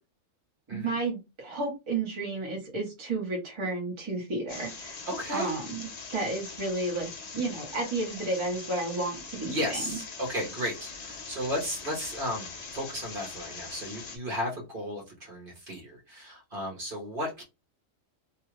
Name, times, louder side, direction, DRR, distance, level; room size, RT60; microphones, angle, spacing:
voice 1, 0.7-5.0 5.3-5.8 6.1-10.0, right 2 dB, 25° right, -2 dB, 0.9 m, -32 dB
sound 1, 4.5-14.2, left 4 dB, 45° left, 0.5 m, -42 dB
voice 2, 5.0-5.5 9.5-12.5 12.7-17.4, equal, 45° right, -2 dB, 1.2 m, -34 dB
2.8 x 2.3 x 3.1 m, 0.26 s
omnidirectional pair, 1.4 m